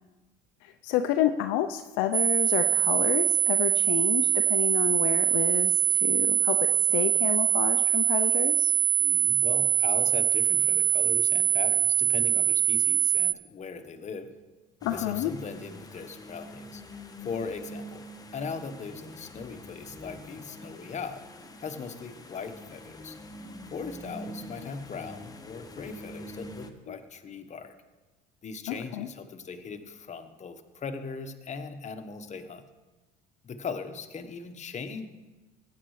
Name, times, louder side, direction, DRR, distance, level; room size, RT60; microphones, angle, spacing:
voice 1, 0.6-8.7 14.8-15.3 26.9-27.0 28.7-29.1, left 12 dB, 70° left, 8 dB, 0.6 m, -30 dB
sound 1, 2.1-13.3, right 11 dB, 30° right, 0.4 m, -23 dB
voice 2, 9.0-14.3 14.9-16.8 17.2-18.0 18.3-21.2 21.6-23.2 23.7-27.7 28.4-32.6 33.4-35.1, left 5 dB, 35° left, 8 dB, 1.2 m, -39 dB
sound 2, 14.8-26.7, left 1 dB, 20° left, 1.2 m, -45 dB
16.0 x 9.4 x 3.2 m, 1.2 s
hypercardioid pair, 70°, 20 cm